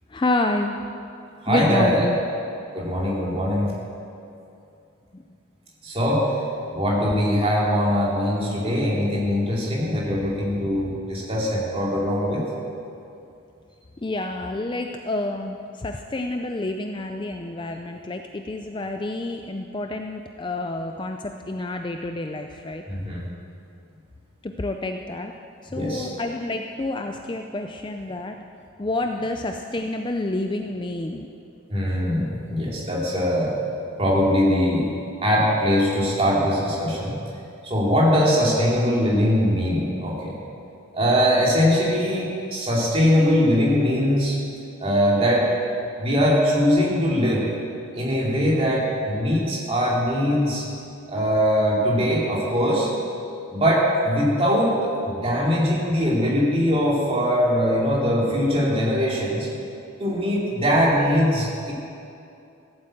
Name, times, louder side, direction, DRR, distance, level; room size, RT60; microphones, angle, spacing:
voice 1, 0.1-0.8 1.5-2.2 5.1-5.2 14.0-22.8 24.4-25.3 25.6-28.4 28.8-31.3, left 2 dB, 20° left, 5 dB, 0.4 m, -28 dB
voice 2, 1.4-2.1 2.7-3.7 5.8-6.3 6.7-12.5 22.9-23.2 25.7-26.1 31.7-33.5 33.9-34.9 35.2-37.2 37.6-40.4 40.9-44.4 44.8-45.5 46.0-47.5 48.0-50.6 51.1-52.9 53.5-59.5 60.0-61.7, equal, 25° right, -5 dB, 2.8 m, -21 dB
14.5 x 8.9 x 7.7 m, 2.6 s
head